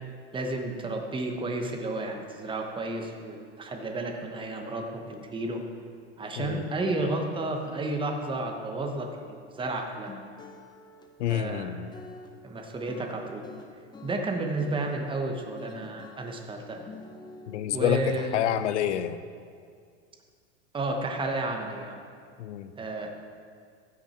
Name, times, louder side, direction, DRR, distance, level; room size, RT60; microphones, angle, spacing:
voice 1, 0.3-5.6 6.2-10.1 11.3-11.7 12.4-13.4 14.0-16.8 17.7-18.5 20.7-22.0 22.8-23.1, right 2 dB, 15° right, 3 dB, 1.1 m, -32 dB
sound 1, 9.6-15.0 15.6-16.3 16.7-17.6, left 3 dB, 10° left, 0.6 m, -47 dB
voice 2, 11.2-11.9 17.5-19.2 22.4-22.7, left 10 dB, 85° left, 12 dB, 0.7 m, -28 dB
15.0 x 6.2 x 4.4 m, 2.2 s
supercardioid pair, 130°, 35 cm